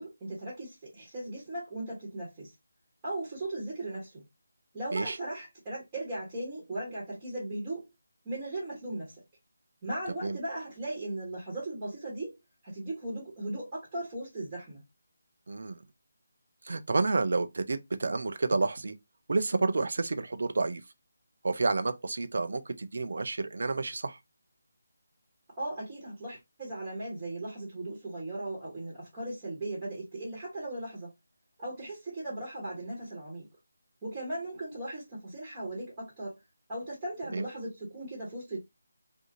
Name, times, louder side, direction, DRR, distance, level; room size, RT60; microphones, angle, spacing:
voice 1, 0.0-2.5 3.0-4.2 4.7-7.8 8.2-9.2 9.8-12.4 12.6-14.8 25.6-31.1 31.6-33.5 34.0-36.3 36.7-38.6, right 1 dB, 20° right, 1.3 m, -37 dB
voice 2, 15.5-15.8 16.6-19.0 19.3-20.8 21.4-24.2 37.3-37.5, right 3 dB, 55° right, 0.4 m, -30 dB
2.6 x 2.3 x 2.6 m
figure-of-eight pair, 155°, 0 cm